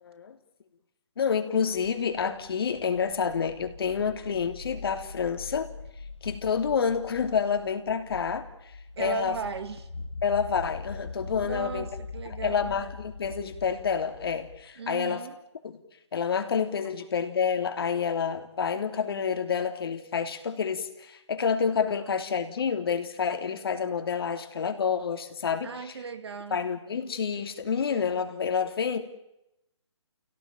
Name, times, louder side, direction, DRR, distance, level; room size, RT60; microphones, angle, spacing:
voice 1, 0.0-0.3 1.2-5.7 6.2-8.4 9.0-9.3 10.2-11.9 12.4-15.2 15.6-15.8 16.1-25.7 26.5-29.0, left 6 dB, 50° left, 7 dB, 3.0 m, -28 dB
sound 1, 1.7-14.6, left 4 dB, 90° left, 2.6 m, -42 dB
voice 2, 9.0-9.9 11.4-12.7 14.8-15.4 25.6-26.6, right 6 dB, 55° right, 10 dB, 2.4 m, -37 dB
29.5 x 17.5 x 9.2 m, 0.88 s
hypercardioid pair, 160°, 16 cm